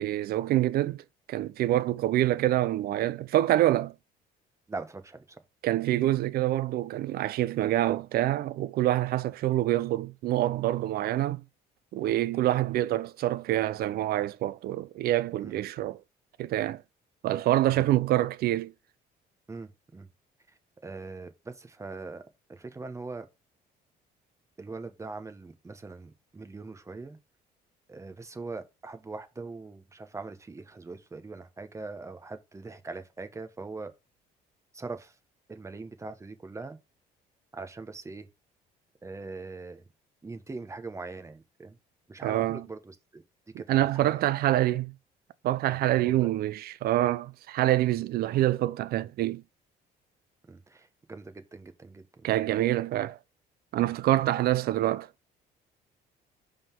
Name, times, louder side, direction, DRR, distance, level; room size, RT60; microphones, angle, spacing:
voice 1, 0.0-3.9 5.6-11.4 11.9-16.0 16.4-16.8 17.2-18.7 42.2-42.6 43.7-44.9 45.4-49.4 52.2-53.2 53.7-55.1, right 14 dB, 65° right, 0.5 m, -26 dB
voice 2, 4.7-5.4 15.4-15.6 17.7-17.9 19.5-20.1 20.5-22.2 22.5-23.3 24.6-27.2 27.9-33.9 34.7-35.2 35.5-36.8 37.5-38.3 39.0-39.9 40.2-41.8 42.1-43.2 43.6-44.2 46.0-46.3 50.4-52.3, right 3 dB, 15° right, 0.9 m, -42 dB
5.2 x 3.7 x 5.6 m
cardioid pair, 110°, 17 cm